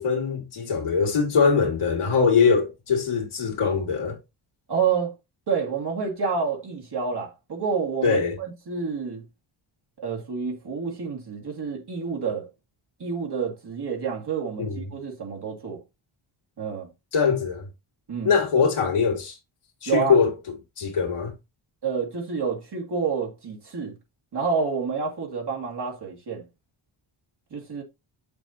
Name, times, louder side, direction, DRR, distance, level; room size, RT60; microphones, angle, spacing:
voice 1, 0.0-4.2 8.0-8.4 14.6-14.8 17.1-17.7 18.2-19.4 19.8-20.3 20.8-21.3, left 5 dB, 80° left, 2.6 m, -22 dB
voice 2, 4.7-5.1 5.5-9.2 10.0-12.5 13.0-15.8 16.6-16.9 18.1-18.7 19.9-20.2 21.8-24.0 24.3-26.4 27.5-27.8, right 5 dB, 50° right, 2.2 m, -28 dB
7.6 x 6.8 x 2.8 m
wide cardioid pair, 135°, 50 cm